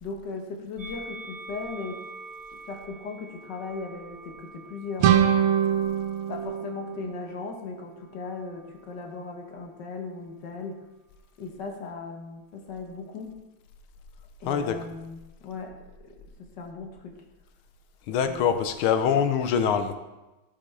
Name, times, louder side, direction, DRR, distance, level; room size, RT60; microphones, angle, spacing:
voice 1, 0.0-2.0 2.7-5.3 6.3-10.8 11.4-13.3 14.4-15.8 16.6-17.2 18.3-18.4, left 4 dB, 60° left, 2 dB, 1.7 m, -37 dB
Musical instrument, 0.8-7.2 8.0-9.0, right 2 dB, 25° right, 1.0 m, -46 dB
sound 1, 5.0-7.8, right 9 dB, 90° right, 1.5 m, -24 dB
voice 2, 14.5-14.8 18.1-19.9, left 7 dB, 80° left, 9 dB, 1.6 m, -24 dB
13.5 x 6.1 x 3.3 m, 1.1 s
omnidirectional pair, 2.3 m